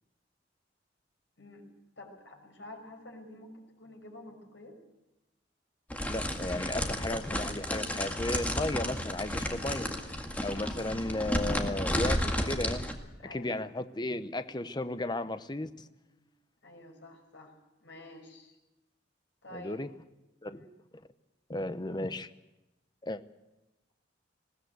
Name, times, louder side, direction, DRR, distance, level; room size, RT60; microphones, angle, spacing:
voice 1, 2.0-3.5 3.8-4.8 10.6-10.9 13.2-13.6 16.1-16.2 16.6-17.5 17.8-18.5 19.4-19.8 20.4-20.7, left 1 dB, 85° left, 2 dB, 6.1 m, -49 dB
sound 1, 5.9-12.9, left 1 dB, 10° left, 1.9 m, -32 dB
voice 2, 6.1-9.9 10.4-12.9 13.3-15.7 19.5-19.9 20.4-20.6 20.9-21.0 21.5-22.3 23.0-23.2, left 1 dB, 25° left, 11 dB, 0.8 m, -34 dB
20.5 x 17.5 x 8.0 m, 0.98 s
head